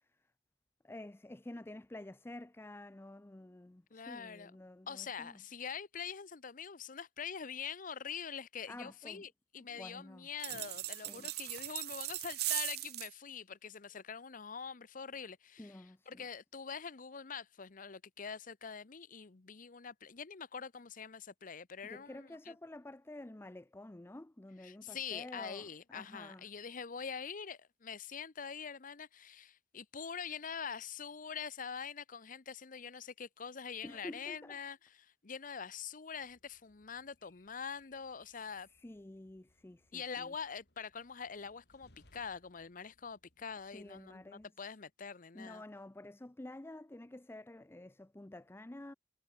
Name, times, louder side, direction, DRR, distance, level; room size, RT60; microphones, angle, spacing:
voice 1, 0.8-5.4 8.7-9.2 9.6-10.3 11.0-11.3 15.6-16.2 21.8-26.4 33.8-34.6 38.4-38.5 38.8-40.3 43.7-44.5 45.3-48.9, left 1 dB, 15° left, 0.5 m, -50 dB
voice 2, 3.9-4.5 4.9-22.5 24.6-38.7 39.9-45.6, left 6 dB, 50° left, 0.8 m, -44 dB
sound 1, 10.4-13.1, right 17 dB, 65° right, 0.6 m, -39 dB
Train, 36.1-44.5, left 2 dB, 65° left, 4.6 m, -71 dB
head